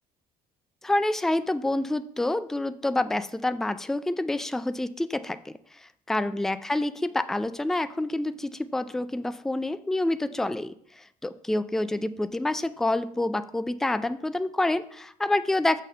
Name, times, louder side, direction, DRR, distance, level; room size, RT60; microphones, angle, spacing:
voice 1, 0.8-15.8, left 2 dB, ahead, 12 dB, 0.3 m, -28 dB
6.3 x 4.3 x 6.4 m, 0.64 s
cardioid pair, 110°, 17 cm